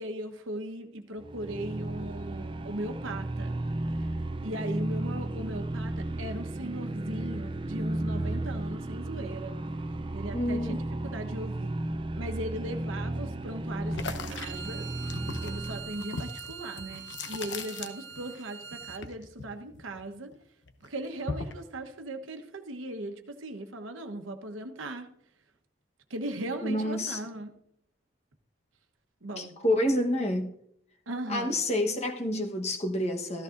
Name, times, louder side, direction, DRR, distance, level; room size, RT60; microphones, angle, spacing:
voice 1, 0.0-3.5 4.0-4.1 4.4-9.6 10.1-11.7 12.2-14.9 15.4-20.3 20.8-25.1 26.1-27.5 29.2-29.5 31.1-31.6, right 1 dB, 85° right, 6 dB, 1.2 m, -38 dB
sound 1, 1.2-16.0, right 1 dB, 25° right, 0.5 m, -34 dB
voice 2, 10.3-10.8 26.6-27.2 29.4-30.5 31.3-33.4, left 1 dB, 30° left, 4 dB, 1.2 m, -28 dB
sound 2, 13.9-18.4 18.7-20.3 20.7-21.7, left 4 dB, 65° left, 0.9 m, -39 dB
Bowed string instrument, 14.3-19.0, right 7 dB, 65° right, 0.7 m, -43 dB
14.5 x 13.5 x 2.6 m, 0.74 s
head